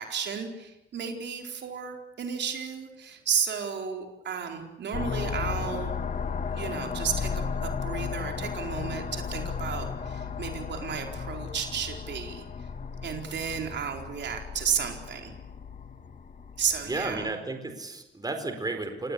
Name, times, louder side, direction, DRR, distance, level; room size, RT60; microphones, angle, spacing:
voice 1, 0.0-5.9 6.5-12.7 13.0-15.3 16.6-17.3, right 7 dB, 60° right, 3 dB, 4.5 m, -33 dB
sound 1, 4.9-17.3, left 6 dB, 40° left, 2.0 m, -35 dB
voice 2, 16.8-19.1, right 2 dB, 20° right, 7 dB, 4.5 m, -33 dB
27.5 x 19.5 x 8.5 m, 0.92 s
cardioid pair, 90°, 20 cm